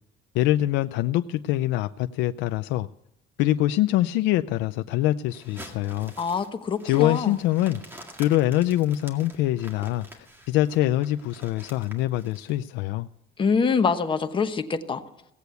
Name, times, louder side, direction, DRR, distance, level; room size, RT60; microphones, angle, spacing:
voice 1, 0.3-2.9 3.4-6.1 6.8-13.1, left 14 dB, 75° left, 0.5 m, -24 dB
sound 1, 5.3-12.6, equal, 10° right, 2.0 m, -47 dB
voice 2, 6.2-7.3 13.4-15.0, left 5 dB, 25° left, 1.1 m, -25 dB
17.0 x 8.2 x 8.1 m
cardioid pair, 140°, 18 cm